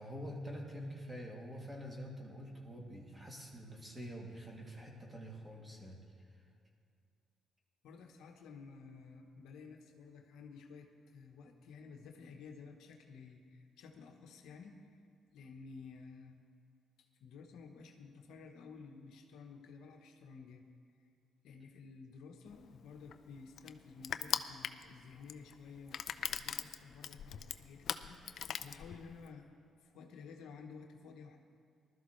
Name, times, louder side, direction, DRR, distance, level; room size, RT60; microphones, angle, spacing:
voice 1, 0.0-6.0, equal, 20° right, -2 dB, 2.7 m, -46 dB
voice 2, 7.8-15.0 15.3-16.4 17.0-20.6 21.4-29.5 29.8-31.4, left 5 dB, 85° left, 3 dB, 1.2 m, -53 dB
Crushing, 22.5-29.3, left 8 dB, 65° left, 0.5 m, -41 dB
20.0 x 12.5 x 3.3 m, 2.4 s
cardioid pair, 90°, 0 cm